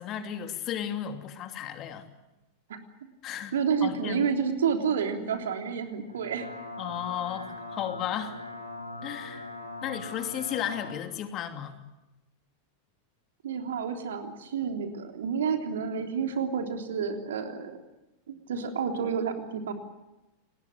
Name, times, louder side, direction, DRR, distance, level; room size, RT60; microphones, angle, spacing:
voice 1, 0.0-2.1 3.2-3.5 3.8-4.2 6.8-8.4 9.0-9.5 9.8-11.8, left 10 dB, 35° left, 6 dB, 2.8 m, -34 dB
voice 2, 3.5-6.5 13.4-17.8 18.3-19.7, right 6 dB, 60° right, 5 dB, 3.3 m, -29 dB
sound 1, 6.0-11.0, left 2 dB, 85° left, 3.9 m, -41 dB
29.0 x 20.0 x 7.5 m, 1.0 s
figure-of-eight pair, 90°, 0 cm